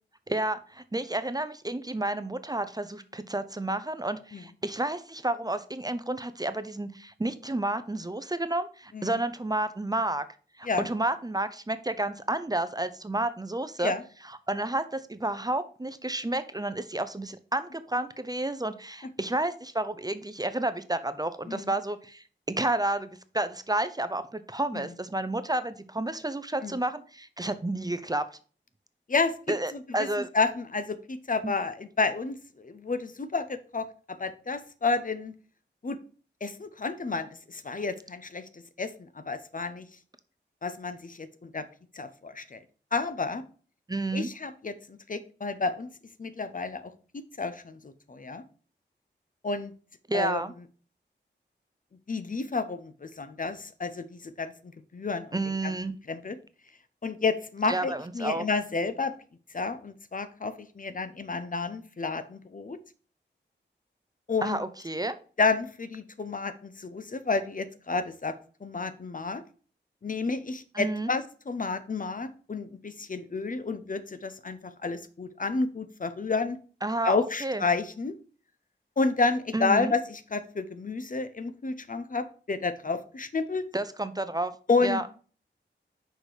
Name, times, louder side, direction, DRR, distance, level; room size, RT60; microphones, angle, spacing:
voice 1, 0.3-10.2 10.6-13.9 14.5-23.1 23.3-28.3 29.5-30.3 31.4-31.5 43.9-44.3 50.1-50.5 55.3-55.9 57.7-58.4 64.4-65.1 70.7-71.1 76.8-77.6 79.5-79.9 83.7-84.5 84.8-85.1, right 2 dB, 20° right, 12 dB, 0.6 m, -30 dB
voice 2, 30.3-35.3 35.8-36.0 36.4-39.9 40.6-41.7 41.9-42.6 42.9-43.4 44.1-45.9 46.2-46.9 47.4-48.4 49.4-49.7 50.1-50.4 52.1-55.7 56.1-56.4 57.0-59.1 59.5-62.8 64.3-64.6 65.4-68.4 68.6-69.4 70.0-76.6 77.0-78.2 79.0-83.6 84.7-85.0, left 4 dB, 45° left, 11 dB, 0.7 m, -30 dB
6.4 x 4.8 x 4.8 m, 0.40 s
wide cardioid pair, 80°, 19 cm